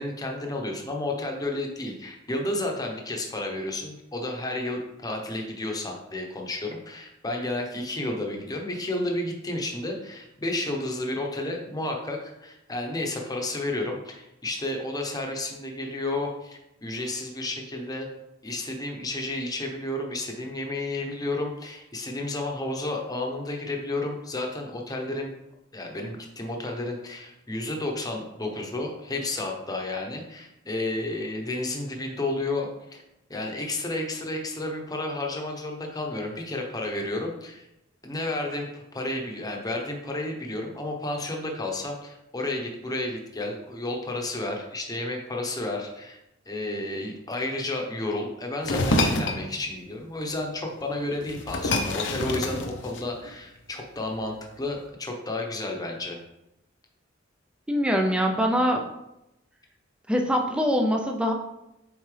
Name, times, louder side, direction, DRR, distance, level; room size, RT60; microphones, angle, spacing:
voice 1, 0.0-18.1 18.4-25.3 25.7-33.0 33.3-37.7 38.0-46.2 46.5-56.2, left 2 dB, 20° left, 1 dB, 0.8 m, -31 dB
sound 1, 48.6-49.4 50.8-50.9 51.2-53.3, left 2 dB, 65° left, 0.7 m, -26 dB
voice 2, 57.7-58.9 60.1-61.3, equal, 5° right, 2 dB, 0.4 m, -23 dB
7.4 x 3.9 x 3.3 m, 0.89 s
head